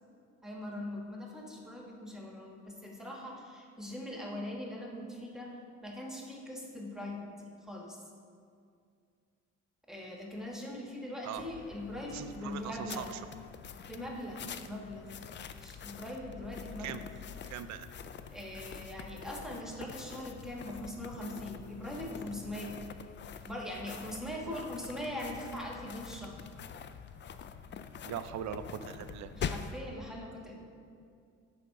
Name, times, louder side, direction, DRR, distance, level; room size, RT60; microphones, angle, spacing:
voice 1, 0.4-5.5 5.8-8.0 9.9-13.1 13.9-15.1 15.6-17.1 18.3-22.8 23.4-26.4 29.3-30.5, left 1 dB, ahead, -1 dB, 1.2 m, -41 dB
sound 1, 11.4-29.8, left 7 dB, 40° left, 0.4 m, -45 dB
voice 2, 12.1-13.2 16.8-17.0 17.5-17.9 24.5-24.6 28.0-29.3, right 10 dB, 70° right, 10 dB, 0.5 m, -40 dB
9.3 x 3.6 x 5.7 m, 2.3 s
cardioid pair, 90°, 30 cm